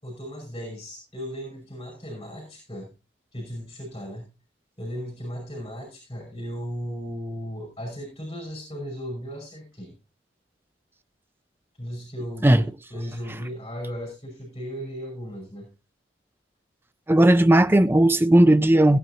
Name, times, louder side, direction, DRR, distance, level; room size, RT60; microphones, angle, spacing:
voice 1, 0.0-2.9 3.3-4.3 4.8-10.0 11.8-15.7, equal, 25° left, 5.2 m, -36 dB
voice 2, 17.1-19.0, right 1 dB, 10° right, 0.5 m, -16 dB
17.0 x 9.4 x 2.8 m
head